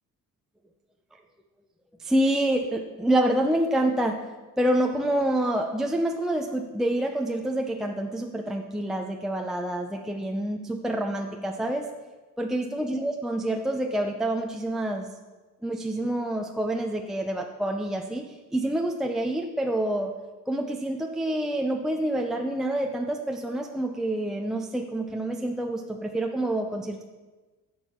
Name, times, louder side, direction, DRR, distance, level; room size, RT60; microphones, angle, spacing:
voice 1, 2.0-4.2 4.6-11.9 12.4-15.1 15.6-20.1 20.5-27.0, right 1 dB, ahead, 2 dB, 0.6 m, -27 dB
10.5 x 7.2 x 6.1 m, 1.2 s
cardioid pair, 135°, 35 cm